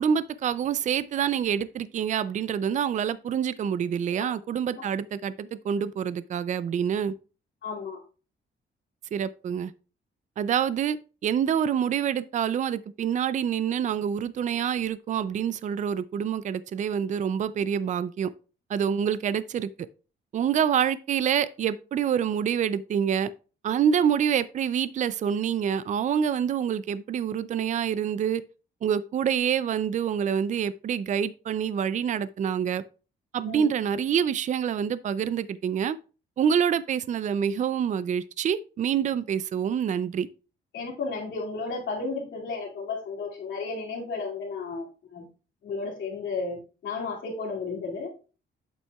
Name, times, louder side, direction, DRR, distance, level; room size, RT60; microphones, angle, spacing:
voice 1, 0.0-7.1 9.1-9.7 10.4-11.0 11.2-18.3 18.7-19.7 20.3-23.3 23.6-28.4 28.8-32.8 33.3-36.0 36.4-40.3, right 8 dB, 40° right, 0.4 m, -26 dB
voice 2, 7.6-8.0 33.5-33.7 40.7-44.9 45.1-45.3 45.6-48.1, left 4 dB, 75° left, 2.4 m, -33 dB
8.2 x 7.4 x 2.3 m
wide cardioid pair, 160°, 20 cm